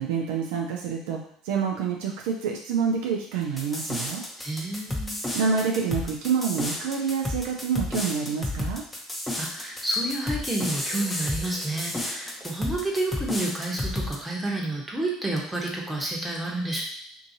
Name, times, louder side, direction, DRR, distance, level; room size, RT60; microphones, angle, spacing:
voice 1, 0.0-4.2 5.3-8.8, right 6 dB, 75° right, 0 dB, 0.4 m, -27 dB
sound 1, 3.6-14.2, left 1 dB, 15° left, 0.8 m, -31 dB
voice 2, 4.4-5.1 9.4-16.8, right 1 dB, 10° right, -2 dB, 1.0 m, -30 dB
2.7 x 2.6 x 2.7 m, 0.63 s
hypercardioid pair, 70°, 0 cm